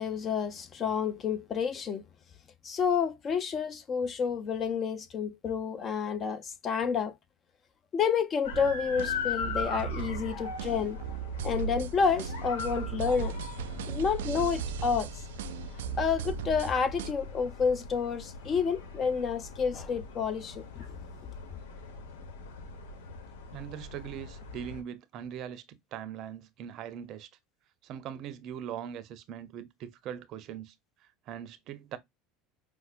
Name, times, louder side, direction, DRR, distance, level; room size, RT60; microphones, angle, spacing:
voice 1, 0.0-2.0 2.6-7.1 7.9-11.0 11.4-13.3 13.9-15.1 16.0-20.8, left 6 dB, 35° left, 0.8 m, -29 dB
sound 1, 8.4-24.8, left 4 dB, 80° left, 1.0 m, -40 dB
sound 2, 8.5-17.1, right 7 dB, 85° right, 0.3 m, -37 dB
voice 2, 23.5-27.3 27.8-30.7 31.3-32.0, right 9 dB, 55° right, 0.7 m, -41 dB
5.6 x 2.1 x 2.4 m
supercardioid pair, 95°, 0 cm